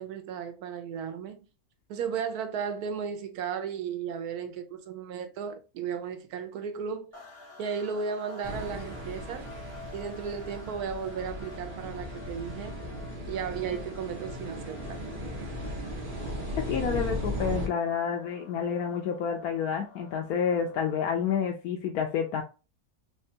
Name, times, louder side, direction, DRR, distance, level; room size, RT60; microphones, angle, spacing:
voice 1, 0.0-1.4 1.9-7.1 7.6-9.5 9.9-12.8 13.3-15.0, right 7 dB, 90° right, 1.2 m, -35 dB
sound 1, 7.1-21.3, left 2 dB, 10° left, 1.0 m, -49 dB
sound 2, 8.4-17.7, equal, 35° right, 1.3 m, -37 dB
voice 2, 16.6-22.4, left 7 dB, 85° left, 1.1 m, -29 dB
3.5 x 3.2 x 2.8 m
omnidirectional pair, 1.6 m